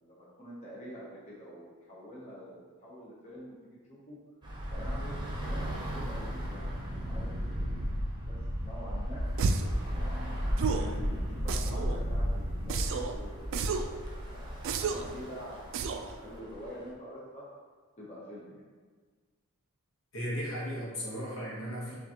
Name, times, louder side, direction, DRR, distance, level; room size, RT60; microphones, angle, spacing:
voice 1, 0.0-4.2 4.7-7.8 8.2-9.2 9.9-17.4 18.0-18.6, equal, 30° left, -7 dB, 0.8 m, -47 dB
Bus / Traffic noise roadway noise, 4.4-16.9, equal, 20° right, 0.8 m, -35 dB
sound 1, 9.4-9.8 10.6-10.9 11.5-12.0 12.7-13.1 13.5-13.9 14.6-15.1 15.7-16.1, right 4 dB, 60° right, 0.3 m, -31 dB
voice 2, 20.1-21.9, equal, 60° left, -4 dB, 1.1 m, -36 dB
6.5 x 2.4 x 2.8 m, 1.5 s
head